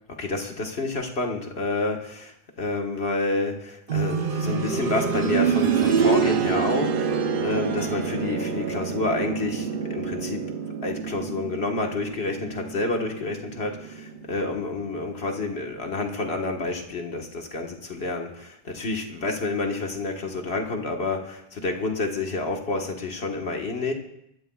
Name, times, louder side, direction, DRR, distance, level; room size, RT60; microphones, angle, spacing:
voice 1, 0.1-10.5 10.8-23.9, left 3 dB, 75° left, 2 dB, 1.8 m, -29 dB
sound 1, 3.9-14.6 15.0-15.1 16.0-16.1, right 6 dB, 60° right, 0.9 m, -27 dB
21.0 x 13.5 x 2.4 m, 0.78 s
omnidirectional pair, 1.1 m